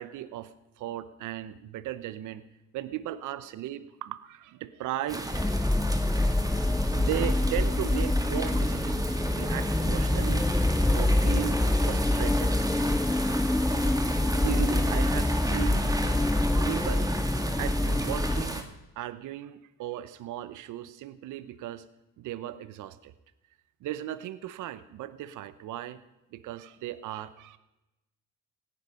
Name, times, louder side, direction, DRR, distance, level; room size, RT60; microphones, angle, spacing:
voice 1, 0.0-2.4 2.7-5.5 6.9-10.5 10.9-12.5 14.4-16.0 16.5-17.2 17.6-18.7 19.0-21.9 22.2-23.1 23.8-26.0 26.3-27.6, right 13 dB, 85° right, 14 dB, 0.8 m, -37 dB
sound 1, 5.1-18.6, right 2 dB, 10° right, 2.0 m, -35 dB
sound 2, 5.3-18.4, left 1 dB, 5° left, 0.5 m, -26 dB
17.0 x 9.8 x 5.6 m, 0.96 s
cardioid pair, 90°, 30 cm